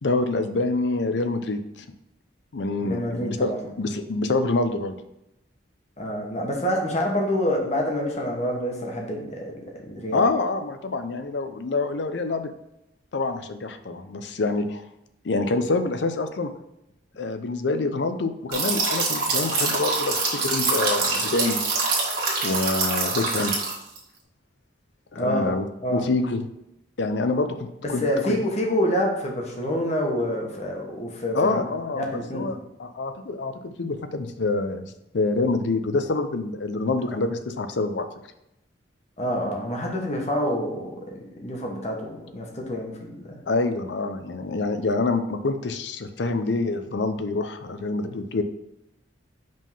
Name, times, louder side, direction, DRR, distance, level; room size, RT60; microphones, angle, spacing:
voice 1, 0.0-1.9 2.5-5.0 10.1-12.5 13.1-14.8 15.2-16.5 17.2-21.6 22.4-23.5 25.1-25.7 25.9-26.4 27.0-28.4 31.3-38.1 43.5-48.4, left 3 dB, 75° left, 8 dB, 0.6 m, -26 dB
voice 2, 2.8-3.7 6.0-10.2 25.2-25.5 25.8-26.0 28.0-31.6 31.9-32.5 39.2-40.9 41.4-43.4, equal, 40° left, 0 dB, 1.3 m, -27 dB
sound 1, 18.5-24.0, right 3 dB, 50° right, 1.6 m, -25 dB
5.3 x 3.7 x 5.5 m, 0.85 s
head